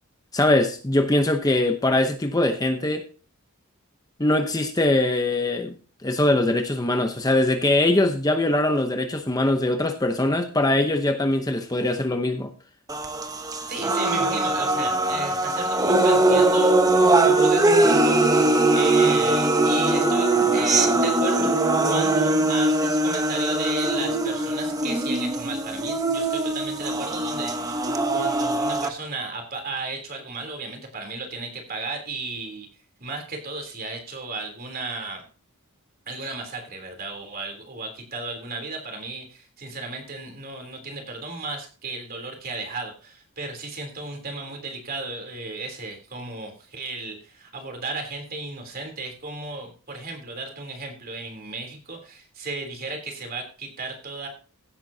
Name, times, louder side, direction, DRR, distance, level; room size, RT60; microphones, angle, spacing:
voice 1, 0.3-3.1 4.2-5.7 6.0-12.5, left 1 dB, 15° left, 0.8 m, -22 dB
sound 1, 12.9-28.9, right 2 dB, 15° right, 0.9 m, -21 dB
voice 2, 13.7-21.6 21.8-32.7 33.0-35.2 36.1-54.3, right 3 dB, 45° right, 3.3 m, -34 dB
16.0 x 8.8 x 2.8 m
head